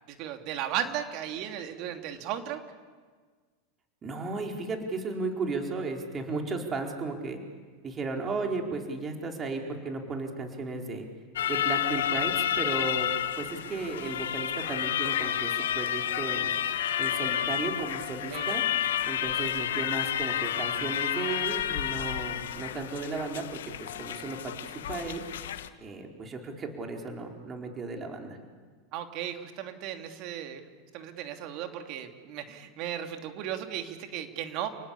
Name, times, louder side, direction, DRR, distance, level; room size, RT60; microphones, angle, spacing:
voice 1, 0.1-2.6 18.3-18.5 28.9-30.6 30.9-34.7, right 10 dB, 55° right, 6 dB, 2.9 m, -35 dB
voice 2, 4.0-7.4 7.8-11.1 11.5-13.1 13.4-16.5 17.0-18.6 19.1-24.5 24.9-25.2 25.8-28.4, right 3 dB, 25° right, 2 dB, 4.4 m, -35 dB
sound 1, 11.4-25.7, left 10 dB, 80° left, 1.3 m, -30 dB
30.0 x 19.0 x 8.5 m, 1.5 s
hypercardioid pair, 105°, 0 cm